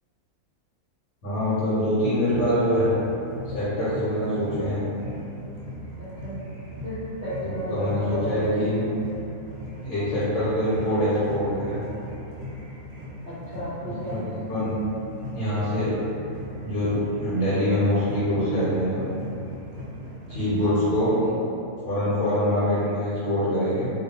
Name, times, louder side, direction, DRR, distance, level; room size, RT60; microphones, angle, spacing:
voice 1, 1.2-2.9 3.5-4.8 7.7-8.8 9.8-11.8 14.1-14.7 15.3-15.9 16.6-19.0 20.3-21.1 21.8-23.9, equal, 70° left, -12 dB, 1.2 m, -24 dB
sound 1, 2.2-21.3, equal, 90° right, 1.1 m, -38 dB
voice 2, 6.0-6.3 6.8-8.9 9.9-10.1 13.2-14.2 20.5-20.9 21.2-21.3, equal, 50° right, -15 dB, 0.6 m, -34 dB
2.5 x 2.3 x 2.7 m, 2.8 s
omnidirectional pair, 1.5 m